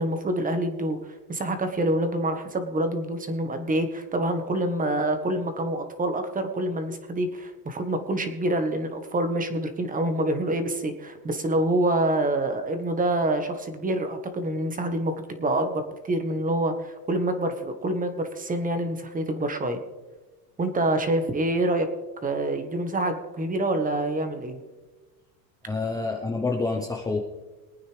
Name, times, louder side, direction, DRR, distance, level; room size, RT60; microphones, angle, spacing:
voice 1, 0.0-15.1 15.4-19.8 20.6-21.9 22.2-24.6, right 1 dB, 15° right, 7 dB, 1.4 m, -26 dB
voice 2, 25.7-27.2, left 3 dB, 10° left, 0 dB, 0.9 m, -27 dB
23.0 x 9.2 x 3.4 m, 1.2 s
supercardioid pair, 135°, 47 cm